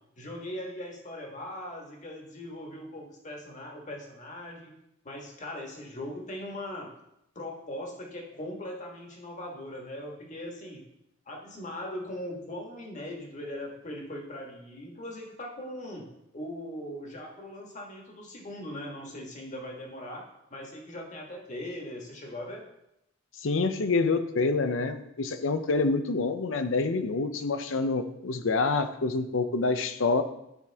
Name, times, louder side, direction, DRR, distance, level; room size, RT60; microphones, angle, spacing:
voice 1, 0.2-4.7 5.0-6.9 7.3-10.8 11.3-16.1 16.3-20.2 20.5-22.7, left 1 dB, 40° left, 0 dB, 1.6 m, -40 dB
voice 2, 23.4-30.2, left 3 dB, 80° left, 10 dB, 0.6 m, -27 dB
11.0 x 5.1 x 3.5 m, 0.83 s
head